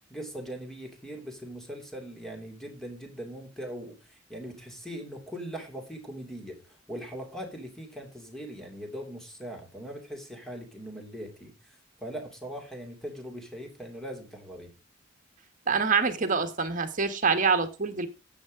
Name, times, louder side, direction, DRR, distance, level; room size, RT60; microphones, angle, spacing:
voice 1, 0.1-11.8 12.0-14.7, equal, ahead, 2 dB, 2.7 m, -40 dB
voice 2, 15.7-18.1, right 5 dB, 40° right, 7 dB, 1.5 m, -25 dB
9.5 x 8.1 x 5.1 m, 0.32 s
head